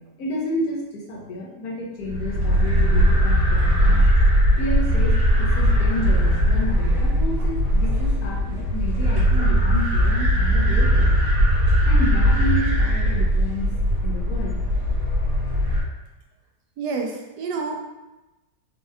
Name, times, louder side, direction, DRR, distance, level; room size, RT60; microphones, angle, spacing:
voice 1, 0.0-4.0 4.6-11.1 11.8-13.7 14.0-14.6, left 1 dB, 65° left, -3 dB, 1.2 m, -30 dB
sound 1, 2.1-15.8, equal, 40° right, 1.3 m, -19 dB
voice 2, 16.8-17.8, right 4 dB, 75° right, 1 dB, 1.2 m, -28 dB
4.3 x 2.8 x 2.3 m, 1.0 s
omnidirectional pair, 1.8 m